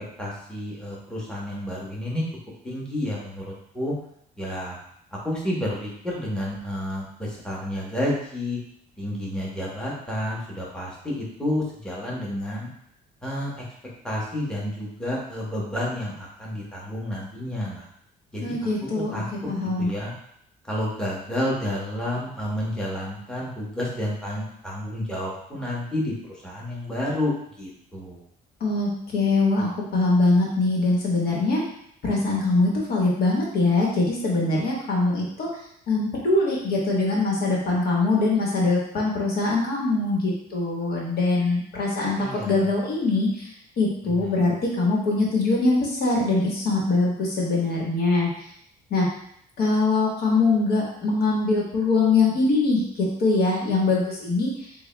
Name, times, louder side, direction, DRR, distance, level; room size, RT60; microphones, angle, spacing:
voice 1, 0.2-2.2 2.6-3.9 4.4-4.8 5.2-8.6 9.0-12.7 13.2-13.5 14.0-17.9 18.3-18.6 19.1-19.3 19.8-20.1 20.7-28.2 42.1-42.7 44.0-44.5, left 1 dB, 5° left, -5 dB, 1.1 m, -30 dB
voice 2, 18.4-19.9 28.6-31.6 32.0-35.5 35.9-43.5 43.8-48.3 48.9-49.1 49.6-54.7, left 3 dB, 65° left, -3 dB, 1.3 m, -23 dB
6.8 x 2.3 x 2.2 m, 0.69 s
cardioid pair, 110°, 17 cm